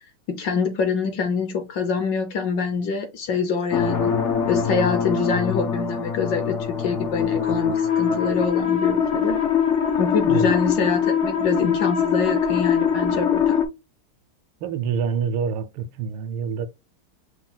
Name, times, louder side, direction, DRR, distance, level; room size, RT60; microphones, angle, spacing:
voice 1, 0.3-4.1 4.5-9.4 10.0-13.5, left 5 dB, 65° left, 1.2 m, -25 dB
sound 1, 3.7-13.6, left 7 dB, 90° left, 0.6 m, -22 dB
voice 2, 14.6-16.7, right 6 dB, 80° right, 1.4 m, -26 dB
5.9 x 2.3 x 3.8 m
omnidirectional pair, 2.4 m